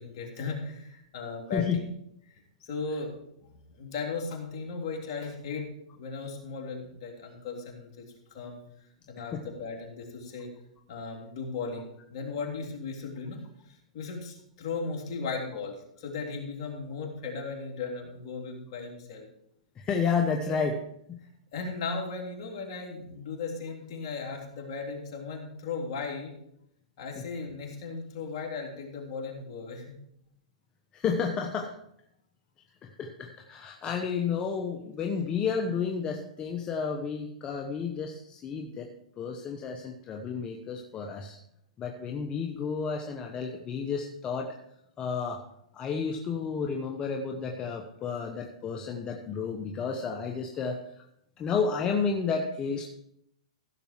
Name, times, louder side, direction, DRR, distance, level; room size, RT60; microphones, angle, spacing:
voice 1, 0.0-1.8 2.6-3.1 3.7-5.7 5.9-8.0 8.3-8.6 9.1-10.5 10.9-13.4 13.9-19.3 20.5-20.6 21.5-26.3 27.0-29.9, left 4 dB, 50° left, 0 dB, 3.3 m, -36 dB
voice 2, 19.8-20.8 21.1-21.2 30.9-31.7 32.8-38.9 39.2-41.4 41.8-44.6 45.0-45.4 45.7-50.8 51.4-52.9, left 5 dB, 20° left, 3 dB, 1.0 m, -31 dB
15.0 x 6.9 x 4.6 m, 0.75 s
hypercardioid pair, 135°, 4 cm